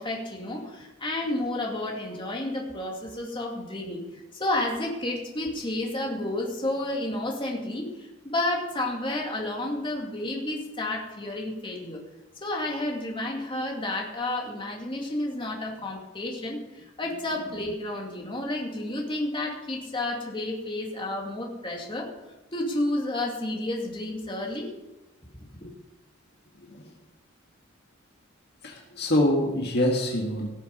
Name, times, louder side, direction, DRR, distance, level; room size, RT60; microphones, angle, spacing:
voice 1, 0.0-4.0 4.3-12.0 12.4-22.1 22.5-24.7 25.6-25.7, left 1 dB, 25° left, 0 dB, 2.4 m, -31 dB
voice 2, 28.6-30.5, left 1 dB, 55° left, 0 dB, 1.7 m, -24 dB
18.5 x 7.0 x 5.3 m, 1.0 s
head